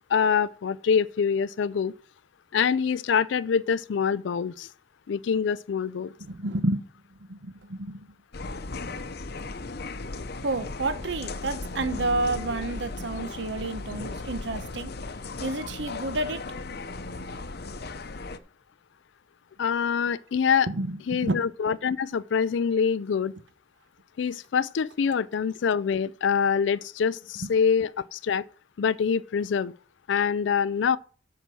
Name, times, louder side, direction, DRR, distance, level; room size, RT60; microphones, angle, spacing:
voice 1, 0.1-1.9 2.5-4.7 5.1-6.1 19.6-20.7 21.1-23.3 24.2-28.4 28.8-29.7 30.1-31.0, left 6 dB, 70° left, 0.4 m, -25 dB
voice 2, 6.2-6.8 7.2-8.1 10.4-14.9 15.4-16.4 20.7-21.4, right 2 dB, 65° right, 1.0 m, -30 dB
sound 1, 8.3-18.4, left 3 dB, 55° left, 0.8 m, -36 dB
8.2 x 6.0 x 7.6 m
head